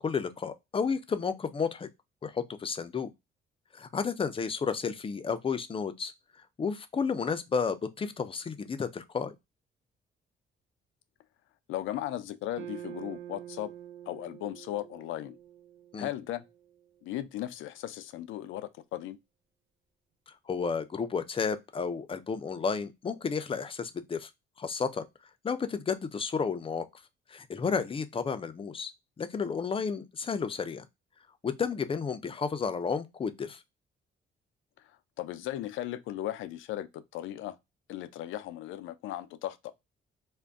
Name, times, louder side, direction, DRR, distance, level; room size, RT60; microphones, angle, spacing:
voice 1, 0.0-1.9 2.2-3.1 3.7-6.1 6.6-9.3 15.9-16.1 20.5-24.3 24.6-25.1 25.4-26.9 27.3-28.9 29.2-30.8 31.4-33.6, left 5 dB, 25° left, 0.5 m, -32 dB
voice 2, 11.7-13.7 14.1-15.4 16.0-16.4 17.0-19.2 35.2-37.6 37.9-39.7, left 13 dB, 85° left, 0.4 m, -36 dB
sound 1, 12.5-16.9, right 11 dB, 75° right, 0.6 m, -46 dB
2.5 x 2.2 x 3.4 m
cardioid pair, 90°, 20 cm